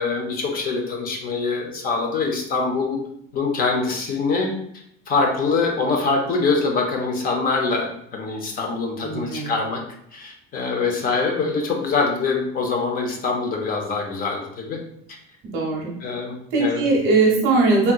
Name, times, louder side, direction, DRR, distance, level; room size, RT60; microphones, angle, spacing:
voice 1, 0.0-3.0 3.3-4.5 5.1-9.8 10.1-14.8 16.0-16.8, left 4 dB, 30° left, 2 dB, 0.5 m, -24 dB
voice 2, 9.0-9.5 15.5-15.9 16.5-17.9, right 3 dB, 45° right, -2 dB, 0.8 m, -19 dB
3.4 x 2.7 x 2.3 m, 0.72 s
cardioid pair, 160°, 30 cm